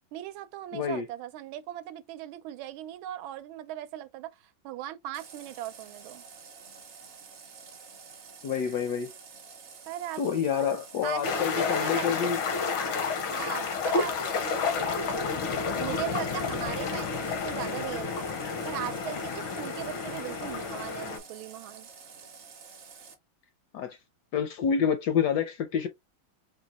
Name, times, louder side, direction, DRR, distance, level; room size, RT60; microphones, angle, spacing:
voice 1, 0.1-6.2 9.9-12.2 13.3-15.4 15.8-18.3 18.6-21.9, right 12 dB, 80° right, 1.4 m, -39 dB
voice 2, 0.7-1.1 8.4-9.1 10.2-12.4 23.7-24.0 24.3-25.9, left 7 dB, 75° left, 1.0 m, -28 dB
Water tap faucet, 5.1-23.1, right 5 dB, 50° right, 0.8 m, -49 dB
sound 1, 11.2-21.2, left 5 dB, 90° left, 1.8 m, -30 dB
4.4 x 2.2 x 4.0 m
omnidirectional pair, 2.2 m